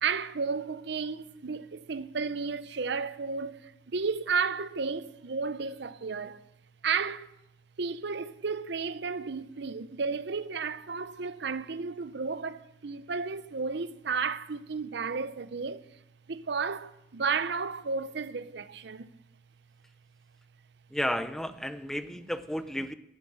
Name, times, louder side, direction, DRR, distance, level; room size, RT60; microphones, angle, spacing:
voice 1, 0.0-6.4 6.8-7.3 7.8-15.9 16.3-19.1, right 5 dB, 65° right, 0.7 m, -33 dB
voice 2, 20.9-22.9, equal, ahead, 0.6 m, -32 dB
11.5 x 11.0 x 7.6 m
head